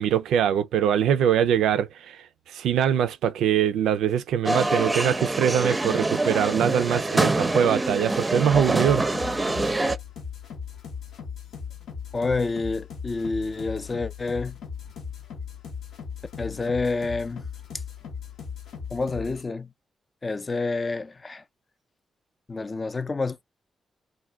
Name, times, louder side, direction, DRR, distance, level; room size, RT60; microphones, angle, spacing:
voice 1, 0.0-2.2 2.5-9.0, right 9 dB, 90° right, 0.3 m, -23 dB
sound 1, 4.4-10.0, right 2 dB, 25° right, 0.5 m, -25 dB
sound 2, 8.4-19.4, left 6 dB, 85° left, 0.7 m, -38 dB
voice 2, 12.1-14.6 16.4-17.5 18.9-19.7 20.2-21.4 22.5-23.4, left 3 dB, 40° left, 0.4 m, -28 dB
2.4 x 2.2 x 3.3 m
supercardioid pair, 55°, 0 cm